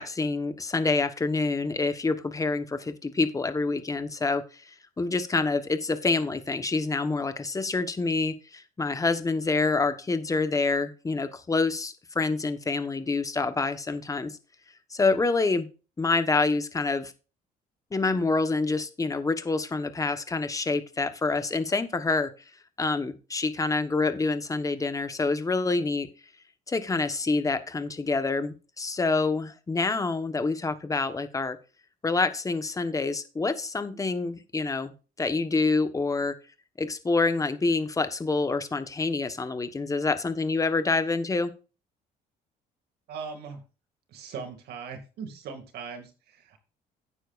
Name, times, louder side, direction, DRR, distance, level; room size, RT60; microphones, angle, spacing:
voice 1, 0.0-14.4 14.9-15.7 16.0-17.1 17.9-22.3 22.8-26.1 26.7-31.6 32.0-34.9 35.2-36.3 36.8-41.5, left 3 dB, 20° left, 10 dB, 1.2 m, -27 dB
voice 2, 43.1-43.6 44.1-46.6, right 5 dB, 70° right, 6 dB, 2.4 m, -39 dB
12.0 x 8.9 x 2.6 m, 0.33 s
cardioid pair, 110°, 17 cm